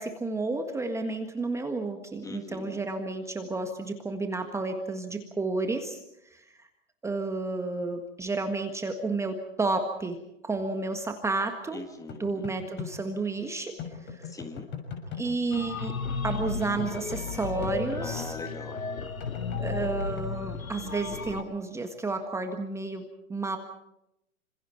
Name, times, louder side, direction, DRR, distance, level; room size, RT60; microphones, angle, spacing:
voice 1, 0.0-6.7 7.0-10.2 10.4-11.8 12.2-13.7 14.0-14.3 15.2-15.9 16.2-18.4 19.6-23.6, right 3 dB, 5° right, 6 dB, 1.6 m, -31 dB
voice 2, 2.2-2.8 11.7-12.3 14.3-14.7 18.0-18.8, left 3 dB, 10° left, 7 dB, 1.7 m, -40 dB
sound 1, 12.1-12.9 13.8-15.3 16.3-17.7 19.2-20.3, left 7 dB, 25° left, 6.6 m, -40 dB
sound 2, 15.5-21.4, left 5 dB, 85° left, 2.1 m, -34 dB
27.5 x 26.5 x 4.6 m, 0.83 s
hypercardioid pair, 125°, 41 cm